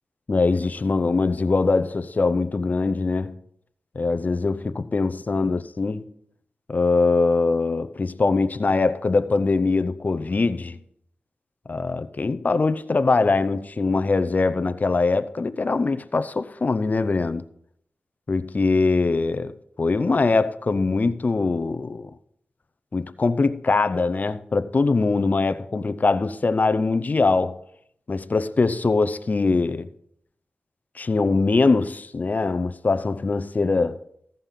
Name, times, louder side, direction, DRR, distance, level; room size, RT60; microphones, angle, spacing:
voice 1, 0.3-3.4 4.0-6.1 6.7-10.8 11.7-17.4 18.3-22.1 22.9-27.6 28.1-29.9 31.0-34.0, left 3 dB, 45° left, 0.6 m, -22 dB
14.5 x 5.4 x 5.7 m
cardioid pair, 60°, 4 cm